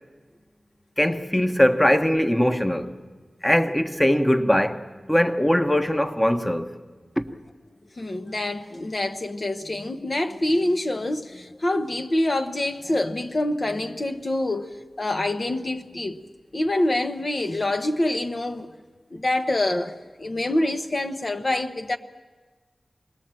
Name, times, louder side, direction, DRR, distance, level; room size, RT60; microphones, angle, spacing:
voice 1, 1.0-2.9 3.4-6.7 7.2-7.3, equal, 10° left, 1.1 m, -21 dB
voice 2, 8.0-14.7 15.0-16.2 16.5-18.7 19.1-22.0, left 1 dB, 50° left, 0.9 m, -26 dB
27.0 x 20.0 x 7.6 m
wide cardioid pair, 70°, 0 cm